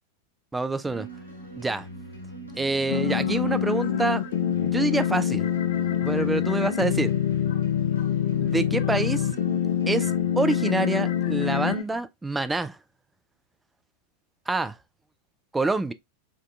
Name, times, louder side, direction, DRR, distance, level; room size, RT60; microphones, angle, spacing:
voice 1, 0.5-1.1 1.6-1.9 2.6-4.2 4.6-5.5 5.9-7.1 8.4-9.3 9.9-12.8 14.5-14.7 15.5-15.9, right 3 dB, 10° right, 0.4 m, -26 dB
sound 1, 0.8-12.0, right 1 dB, 90° right, 1.5 m, -42 dB
sound 2, 2.9-11.8, left 9 dB, 55° left, 0.4 m, -25 dB
5.1 x 2.8 x 2.3 m
figure-of-eight pair, 90°, 0 cm